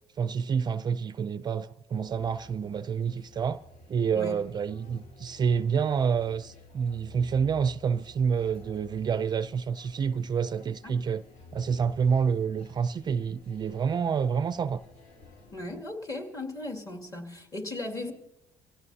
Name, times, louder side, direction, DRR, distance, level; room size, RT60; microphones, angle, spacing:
voice 1, 0.2-3.6 3.9-11.2 11.5-14.8, right 6 dB, 35° right, 0.4 m, -28 dB
sound 1, 1.9-15.8, left 2 dB, 65° left, 3.1 m, -52 dB
voice 2, 10.8-11.2 15.5-18.1, left 2 dB, 30° left, 2.5 m, -37 dB
25.0 x 17.0 x 2.8 m
cardioid pair, 110°, 12 cm